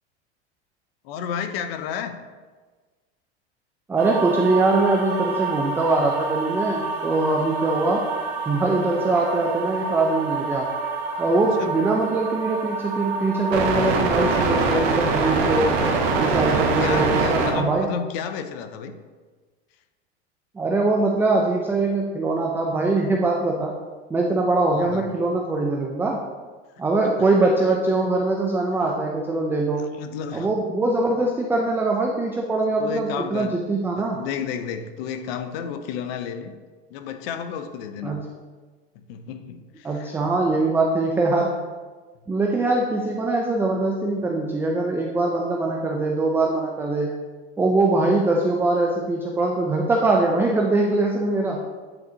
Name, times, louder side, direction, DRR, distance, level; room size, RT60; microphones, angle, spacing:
voice 1, 1.0-2.2 11.6-11.7 16.5-19.0 24.7-25.0 26.8-27.1 27.7-28.1 29.8-30.5 32.8-33.5 34.0-36.6 36.9-38.2 38.9-40.1, left 7 dB, 60° left, 9 dB, 0.6 m, -32 dB
voice 2, 3.9-8.0 8.5-10.7 11.2-15.8 16.2-17.9 20.6-23.7 24.1-26.2 26.8-29.8 30.3-34.2 38.0-38.2 39.8-41.5 42.3-47.1 47.6-51.6, right 2 dB, 5° right, 0 dB, 0.3 m, -22 dB
sound 1, 4.0-17.6, right 4 dB, 65° right, 1.1 m, -25 dB
8.7 x 4.0 x 2.8 m, 1.4 s
hypercardioid pair, 110°, 33 cm